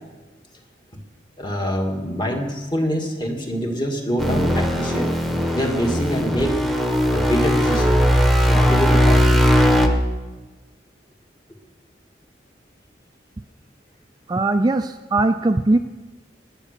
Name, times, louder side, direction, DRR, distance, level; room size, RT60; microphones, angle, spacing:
voice 1, 1.4-5.1 5.5-6.6 7.1-8.0 8.4-9.5, equal, 25° left, 2 dB, 1.9 m, -25 dB
sound 1, 4.2-9.9, equal, ahead, 1.2 m, -18 dB
voice 2, 14.3-15.8, right 2 dB, 20° right, 7 dB, 0.4 m, -19 dB
18.0 x 9.7 x 6.6 m, 1.2 s
head